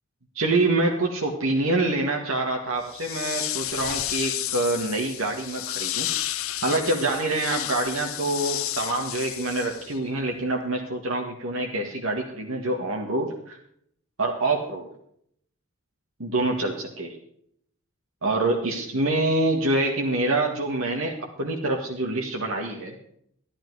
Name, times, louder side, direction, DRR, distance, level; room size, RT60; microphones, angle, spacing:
voice 1, 0.4-6.2 6.6-13.6 14.2-14.9 16.2-17.2 18.2-22.9, right 2 dB, 65° right, 1 dB, 1.7 m, -26 dB
sound 1, 2.8-10.1, left 14 dB, 70° left, 0.7 m, -32 dB
12.0 x 11.5 x 4.8 m, 0.68 s
head